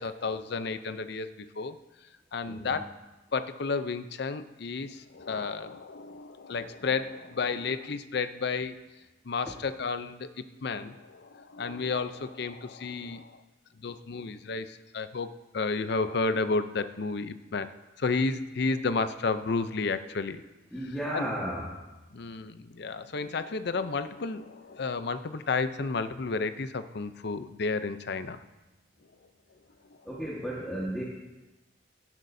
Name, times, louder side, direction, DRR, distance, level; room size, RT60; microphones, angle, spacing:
voice 1, 0.0-1.8 2.3-2.9 3.3-8.7 9.2-13.4 13.8-17.7 18.0-20.4 21.1-21.3 22.1-28.4 29.9-30.0, left 4 dB, 60° left, 11 dB, 0.6 m, -32 dB
voice 2, 20.7-21.8 30.0-31.0, equal, 5° left, -6 dB, 1.5 m, -34 dB
17.0 x 12.0 x 2.7 m, 1.1 s
head